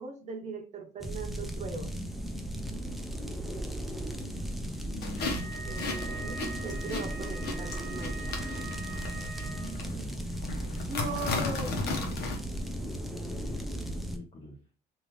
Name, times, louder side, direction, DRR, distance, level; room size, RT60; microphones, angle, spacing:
voice 1, 0.0-1.9 5.6-8.4 10.9-11.7, right 3 dB, 45° right, 4 dB, 0.8 m, -39 dB
sound 1, 1.0-14.2, right 1 dB, ahead, 0.5 m, -36 dB
voice 2, 4.8-5.8 7.4-7.5 8.3-10.2 10.9-12.4 13.3-14.6, left 1 dB, 35° left, -2 dB, 0.9 m, -45 dB
sound 2, 5.0-12.4, left 3 dB, 70° left, 0.9 m, -36 dB
Wind instrument woodwind instrument, 5.2-9.9, right 4 dB, 85° right, 0.5 m, -43 dB
3.3 x 2.5 x 3.0 m, 0.37 s
cardioid pair, 110°, 17 cm